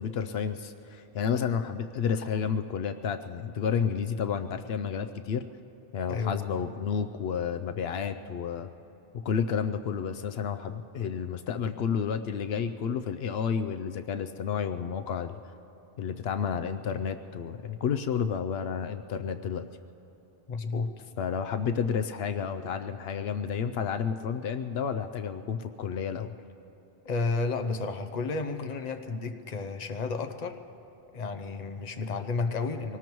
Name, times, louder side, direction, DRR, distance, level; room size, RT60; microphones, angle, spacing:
voice 1, 0.0-5.4 5.9-8.7 9.2-15.4 16.0-19.6 21.2-26.3, left 7 dB, 80° left, 9 dB, 0.8 m, -31 dB
voice 2, 20.5-20.9 27.0-30.6 31.1-33.0, left 4 dB, 45° left, 7 dB, 0.9 m, -32 dB
24.5 x 19.0 x 3.1 m, 2.9 s
omnidirectional pair, 1.0 m